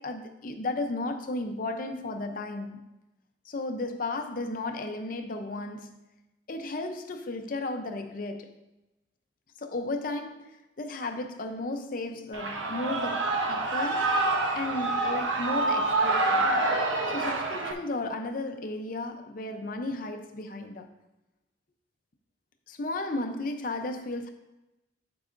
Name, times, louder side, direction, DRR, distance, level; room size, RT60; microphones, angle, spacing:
voice 1, 0.0-2.8 3.4-6.0 6.5-8.6 9.6-14.1 14.5-16.5 17.0-20.9 22.7-24.3, left 2 dB, 45° left, 0.6 m, -34 dB
Shout / Cheering, 12.3-17.7, right 2 dB, 90° right, 1.0 m, -27 dB
9.4 x 8.2 x 2.6 m
head